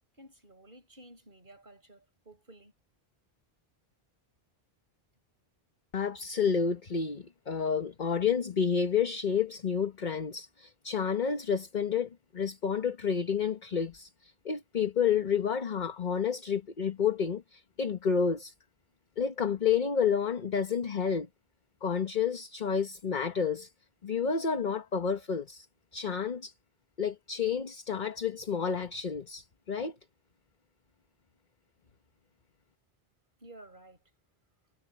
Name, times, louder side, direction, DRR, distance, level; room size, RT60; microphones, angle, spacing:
voice 1, 0.1-2.7 33.4-34.0, right 1 dB, 55° right, 6.4 m, -53 dB
voice 2, 5.9-18.5 19.2-21.3 21.8-23.7 24.0-25.7 25.9-26.5 27.0-29.9, left 6 dB, 50° left, 1.2 m, -30 dB
omnidirectional pair, 1.1 m